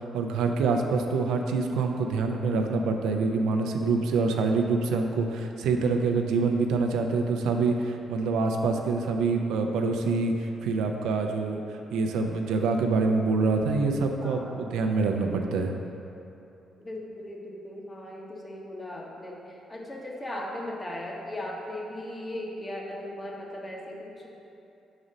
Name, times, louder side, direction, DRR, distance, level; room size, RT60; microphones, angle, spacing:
voice 1, 0.1-11.6 11.9-15.7, right 4 dB, 85° right, 3 dB, 0.4 m, -26 dB
voice 2, 14.2-14.8 15.2-15.6 16.8-24.3, left 1 dB, 25° left, -1 dB, 1.0 m, -38 dB
5.1 x 4.1 x 5.0 m, 2.8 s
cardioid pair, 70°, 0 cm